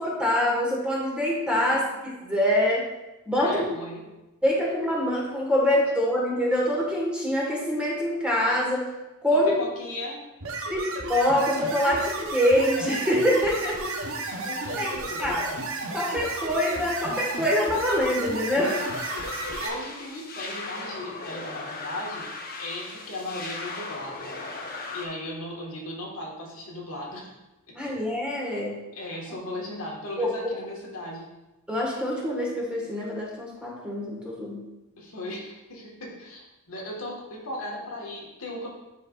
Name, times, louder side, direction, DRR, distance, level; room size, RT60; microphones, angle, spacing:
voice 1, 0.0-2.8 3.2-3.6 4.4-8.9 9.2-9.5 10.7-13.8 14.8-14.9 15.2-15.5 15.9-18.8 27.7-28.7 30.2-30.3 31.7-34.6, equal, 5° right, -4 dB, 1.5 m, -25 dB
voice 2, 3.3-4.0 9.3-10.2 13.8-15.5 18.5-18.6 19.6-24.3 24.9-27.4 27.8-28.0 28.9-31.3 35.0-36.4 36.7-38.7, left 1 dB, 75° left, -2 dB, 1.7 m, -37 dB
sound 1, 10.4-19.7, right 2 dB, 65° right, 1.0 m, -33 dB
sound 2, 18.7-25.1, left 3 dB, 45° left, 0.9 m, -37 dB
10.5 x 4.6 x 2.5 m, 1.0 s
head